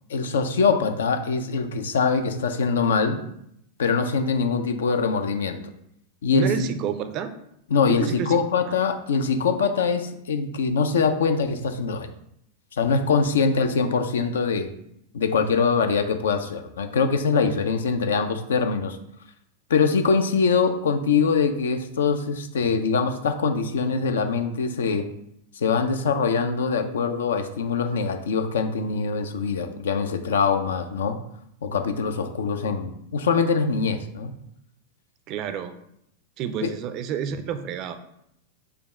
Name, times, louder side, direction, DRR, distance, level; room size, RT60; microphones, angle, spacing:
voice 1, 0.1-3.2 3.8-5.6 6.2-6.5 7.7-12.1 12.8-14.7 15.1-19.0 19.7-25.1 25.6-31.2 31.6-34.3 36.6-36.7, left 5 dB, 65° left, 8 dB, 0.4 m, -23 dB
voice 2, 6.3-7.3 7.9-8.4 35.3-35.7 36.4-38.0, right 7 dB, 40° right, 10 dB, 0.4 m, -29 dB
5.1 x 2.3 x 4.4 m, 0.74 s
figure-of-eight pair, 90°, 0 cm